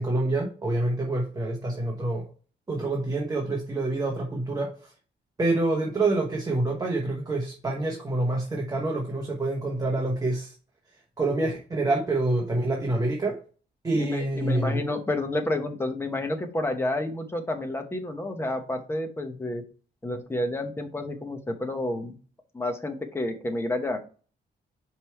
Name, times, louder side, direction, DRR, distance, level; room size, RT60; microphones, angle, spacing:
voice 1, 0.0-2.3 2.7-4.9 5.4-10.5 11.2-13.4 13.8-14.8, right 2 dB, 20° right, 0 dB, 1.1 m, -27 dB
voice 2, 13.9-19.6 20.0-22.2 22.5-24.0, left 1 dB, 10° left, 5 dB, 0.9 m, -30 dB
5.3 x 4.6 x 4.5 m, 0.39 s
cardioid pair, 145°, 19 cm